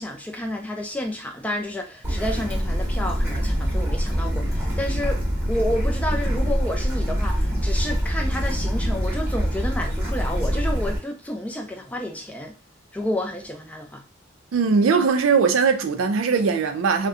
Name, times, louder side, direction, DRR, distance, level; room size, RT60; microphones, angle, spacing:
voice 1, 0.0-5.2 5.5-12.5 12.9-14.0, left 1 dB, 5° left, 0.4 m, -30 dB
Bird / Stream, 2.0-11.0, equal, 10° right, 0.8 m, -24 dB
voice 2, 14.5-17.1, right 5 dB, 85° right, 0.4 m, -20 dB
2.6 x 2.1 x 2.4 m
head